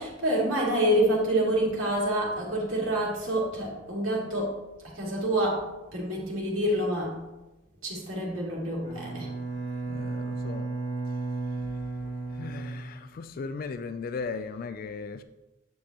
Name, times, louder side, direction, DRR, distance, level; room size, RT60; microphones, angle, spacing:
voice 1, 0.0-4.6 4.8-5.6 5.9-7.1 7.8-9.3, right 1 dB, 90° right, 2.6 m, -27 dB
Bowed string instrument, 8.8-13.6, right 3 dB, 30° left, 2.6 m, -34 dB
voice 2, 9.9-10.7 12.3-15.2, left 4 dB, 45° left, 0.3 m, -37 dB
9.3 x 7.2 x 2.9 m
head